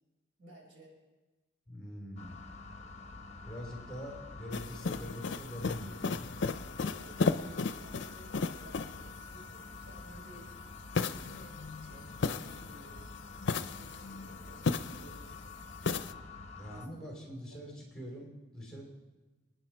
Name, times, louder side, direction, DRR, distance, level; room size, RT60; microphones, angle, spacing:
voice 1, 0.4-0.9 6.3-6.4 6.7-10.5 11.0-13.1 13.5-15.4 16.7-17.2, right 2 dB, 75° right, -1 dB, 4.8 m, -56 dB
voice 2, 1.7-2.4 3.4-6.4 16.5-18.8, equal, 5° left, -2 dB, 3.0 m, -44 dB
sound 1, 2.2-16.9, left 3 dB, 35° left, 0.9 m, -48 dB
sound 2, 4.5-9.1 10.9-12.9 13.4-15.2 15.8-16.1, left 4 dB, 70° left, 0.5 m, -35 dB
26.5 x 9.8 x 4.5 m, 1.2 s
head